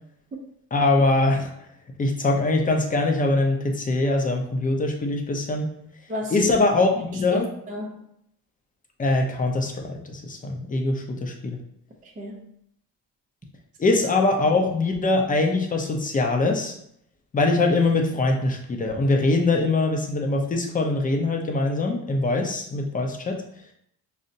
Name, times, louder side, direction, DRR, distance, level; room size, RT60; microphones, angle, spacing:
voice 1, 0.7-1.5 2.0-5.7 6.3-7.5 9.0-11.6 13.8-16.7 17.3-23.4, left 2 dB, 20° left, 3 dB, 0.6 m, -22 dB
voice 2, 6.1-6.6 7.1-8.0 12.0-12.5 13.9-14.0, left 2 dB, 20° right, -2 dB, 0.6 m, -33 dB
5.2 x 2.0 x 2.7 m, 0.73 s
cardioid pair, 100°, 37 cm